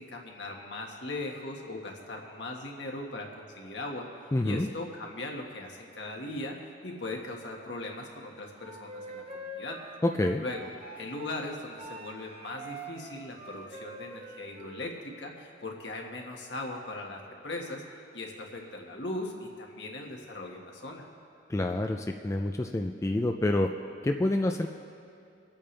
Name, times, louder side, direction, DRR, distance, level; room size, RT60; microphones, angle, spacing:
voice 1, 0.0-6.6 6.8-9.8 10.4-17.8 18.1-21.0, left 2 dB, 70° left, 0 dB, 1.6 m, -39 dB
voice 2, 4.3-4.7 10.0-10.4 21.5-23.7 24.0-24.7, left 1 dB, 15° left, 3 dB, 0.4 m, -27 dB
Wind instrument woodwind instrument, 8.6-11.4 11.8-14.9, right 1 dB, 35° right, 1.1 m, -45 dB
26.0 x 8.7 x 3.3 m, 2.5 s
head